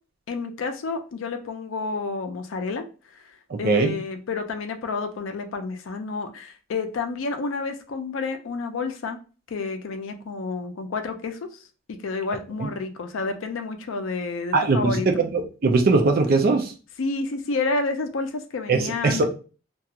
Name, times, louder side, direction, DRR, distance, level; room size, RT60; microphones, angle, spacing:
voice 1, 0.3-2.8 3.3-9.2 9.5-11.5 11.9-15.1 17.0-19.2, left 3 dB, 70° left, 7 dB, 0.4 m, -30 dB
voice 2, 3.5-3.9 12.6-12.7 14.5-16.7 18.7-19.2, right 3 dB, 45° right, 5 dB, 0.4 m, -21 dB
2.4 x 2.3 x 2.7 m, 0.35 s
head